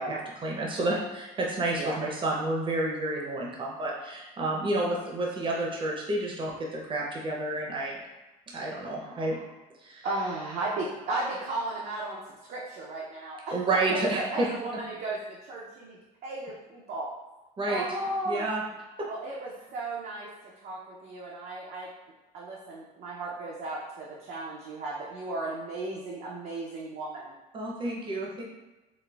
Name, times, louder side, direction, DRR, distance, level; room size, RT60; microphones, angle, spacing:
voice 1, 0.0-8.0 8.5-9.4 9.8-10.1 13.5-14.8 17.6-17.9 18.3-18.6 19.0-19.1 27.5-28.5, right 2 dB, 30° right, -2 dB, 0.7 m, -30 dB
voice 2, 9.0-9.4 10.0-13.6 13.9-17.1 17.7-18.5 19.1-20.3 20.6-21.9 22.3-27.4, right 2 dB, 65° right, -5 dB, 0.6 m, -35 dB
4.0 x 2.4 x 2.3 m, 1.1 s
cardioid pair, 110°, 17 cm